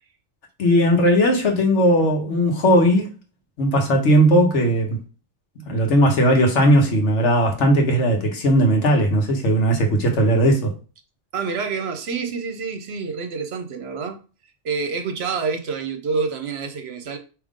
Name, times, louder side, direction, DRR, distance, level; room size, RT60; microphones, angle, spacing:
voice 1, 0.6-3.1 3.6-5.0 5.7-10.7, equal, 70° left, 1.3 m, -17 dB
voice 2, 11.3-14.2 14.6-17.2, right 5 dB, 65° right, 0.9 m, -27 dB
5.0 x 2.9 x 3.6 m
omnidirectional pair, 1.2 m